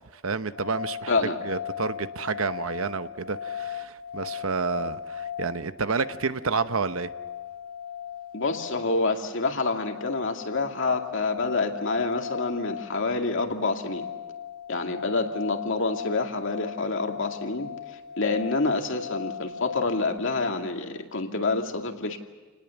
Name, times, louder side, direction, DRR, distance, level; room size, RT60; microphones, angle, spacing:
voice 1, 0.1-1.1 1.4-7.1, right 4 dB, 70° right, 12 dB, 0.9 m, -29 dB
sound 1, 0.5-20.2, left 8 dB, 85° left, 1.9 m, -38 dB
voice 2, 1.1-1.4 8.3-14.1 14.7-22.2, left 3 dB, 65° left, 4 dB, 2.3 m, -27 dB
28.5 x 19.5 x 7.1 m, 1.4 s
head